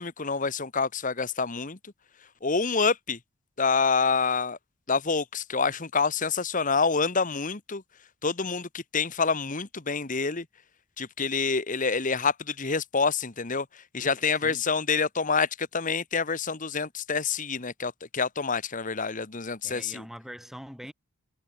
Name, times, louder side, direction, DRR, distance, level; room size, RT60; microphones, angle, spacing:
voice 1, 0.0-1.8 2.4-3.2 3.6-4.6 4.9-7.8 8.2-10.4 11.0-13.7 13.9-20.0, left 5 dB, 35° left, 1.3 m, -27 dB
voice 2, 19.6-20.9, equal, ahead, 5.3 m, -43 dB
head